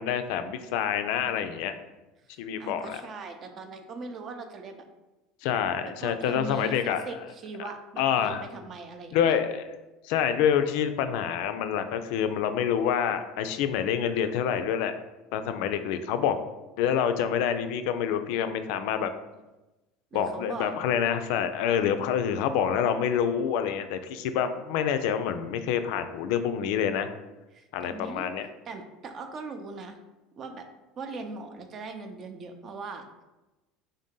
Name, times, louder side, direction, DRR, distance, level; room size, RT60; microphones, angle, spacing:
voice 1, 0.0-1.8 2.4-3.0 5.4-7.0 8.0-8.4 9.1-9.8 10.0-14.9 15.3-16.4 16.8-19.1 20.1-27.1 27.7-28.5, left 8 dB, 70° left, 9 dB, 0.3 m, -27 dB
voice 2, 2.3-4.9 5.8-9.4 20.1-20.7 27.5-28.3 28.7-30.0 30.4-30.7 31.0-33.1, right 3 dB, 45° right, 6 dB, 0.6 m, -40 dB
3.6 x 2.7 x 3.6 m, 1.1 s
hypercardioid pair, 85°, 0 cm